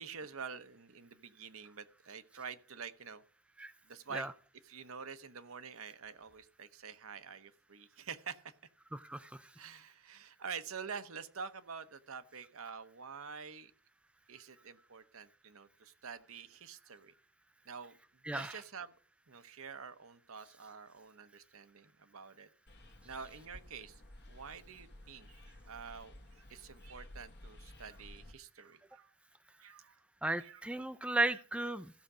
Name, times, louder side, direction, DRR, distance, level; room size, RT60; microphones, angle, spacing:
voice 1, 0.0-3.2 3.9-4.3 4.6-8.4 9.6-13.7 14.3-17.1 17.6-18.0 18.3-18.9 19.3-22.5 23.0-24.0 24.3-29.1 29.6-29.9 30.4-30.6, right 6 dB, 70° right, 10 dB, 0.9 m, -47 dB
voice 2, 8.9-9.5 18.3-18.6 30.2-31.9, right 2 dB, 5° right, 11 dB, 0.4 m, -35 dB
sound 1, 22.7-28.3, left 1 dB, 55° left, 1.3 m, -54 dB
15.5 x 6.5 x 4.9 m, 0.43 s
head